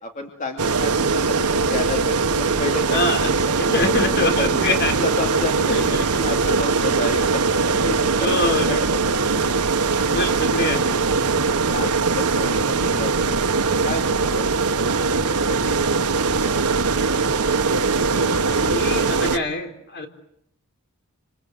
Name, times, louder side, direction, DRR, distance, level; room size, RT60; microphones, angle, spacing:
voice 1, 0.0-3.6 4.0-4.6 5.0-7.5 7.7-9.5 10.3-11.1 11.7-14.9 15.5-17.0, left 2 dB, 35° left, 3 dB, 2.7 m, -31 dB
sound 1, 0.6-19.4, right 4 dB, 85° right, 1.3 m, -21 dB
voice 2, 2.9-4.9 5.7-6.1 8.2-8.8 10.1-10.8 18.0-20.1, left 2 dB, 50° left, 5 dB, 3.9 m, -25 dB
28.0 x 27.0 x 7.9 m, 0.75 s
head